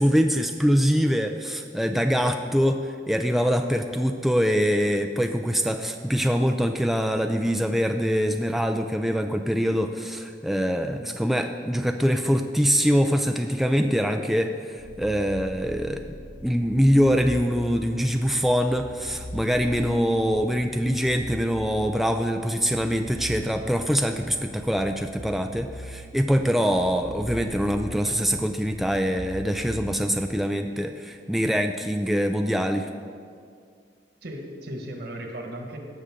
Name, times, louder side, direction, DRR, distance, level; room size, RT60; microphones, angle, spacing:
voice 1, 0.0-16.0 16.4-32.9, equal, ahead, 5 dB, 0.3 m, -24 dB
sound 1, 14.8-30.3, right 1 dB, 75° left, 2.0 m, -41 dB
voice 2, 34.2-35.8, right 1 dB, 65° right, 2 dB, 1.5 m, -36 dB
17.0 x 6.6 x 3.7 m, 2.2 s
head